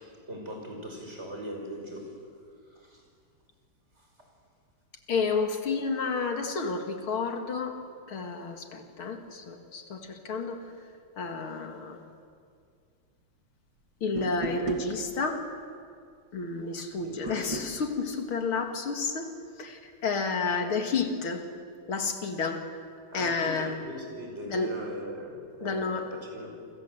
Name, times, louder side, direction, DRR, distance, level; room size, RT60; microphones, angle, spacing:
voice 1, 0.3-2.2 2.7-3.0 4.0-4.3 16.9-17.4 23.1-26.6, equal, 30° right, 1 dB, 5.8 m, -40 dB
voice 2, 5.1-7.8 8.1-10.6 11.2-12.0 14.0-15.5 16.3-19.3 19.6-21.5 21.9-22.6 23.1-23.8 24.5-24.7 25.6-26.1, left 4 dB, 70° left, 5 dB, 2.8 m, -30 dB
sound 1, 14.2-14.9 17.3-17.7, right 2 dB, 60° right, 2.7 m, -35 dB
28.0 x 26.0 x 7.9 m, 2.2 s
omnidirectional pair, 2.4 m